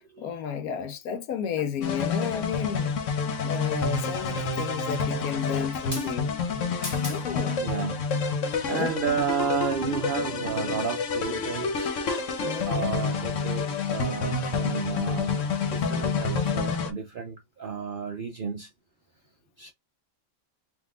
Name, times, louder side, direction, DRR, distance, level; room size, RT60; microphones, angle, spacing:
voice 1, 0.0-2.9 3.4-6.3 7.1-7.6 8.7-8.9 12.4-12.9, left 8 dB, 90° left, 1.1 m, -32 dB
sound 1, 1.8-16.9, left 4 dB, 65° left, 1.1 m, -28 dB
voice 2, 6.8-12.1 12.7-18.7 19.6-19.7, right 6 dB, 65° right, 0.5 m, -32 dB
3.8 x 2.6 x 3.6 m
omnidirectional pair, 1.5 m